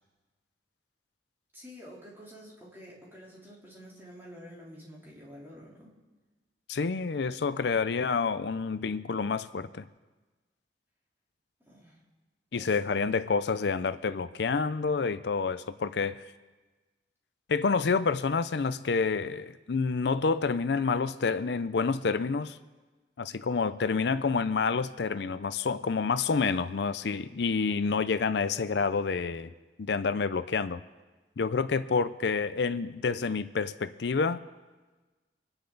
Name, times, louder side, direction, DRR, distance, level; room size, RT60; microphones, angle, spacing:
voice 1, 1.5-5.9 11.7-12.0 12.5-12.8, equal, 15° right, -6 dB, 3.6 m, -49 dB
voice 2, 6.7-9.8 12.5-16.2 17.5-22.6 23.2-29.5 29.8-30.8 31.4-34.4, left 4 dB, 70° left, 13 dB, 0.5 m, -28 dB
26.0 x 10.0 x 4.0 m, 1.3 s
head